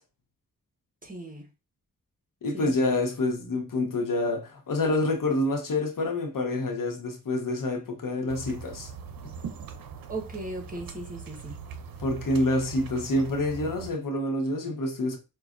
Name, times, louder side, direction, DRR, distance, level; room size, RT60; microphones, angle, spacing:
voice 1, 1.0-1.5 2.5-2.7 10.1-11.5, right 2 dB, 25° right, 1.3 m, -37 dB
voice 2, 2.4-8.9 12.0-15.2, left 2 dB, 65° left, 1.0 m, -27 dB
sound 1, 8.3-13.9, right 6 dB, 75° right, 0.6 m, -41 dB
5.1 x 2.4 x 2.5 m
cardioid pair, 55°, 35 cm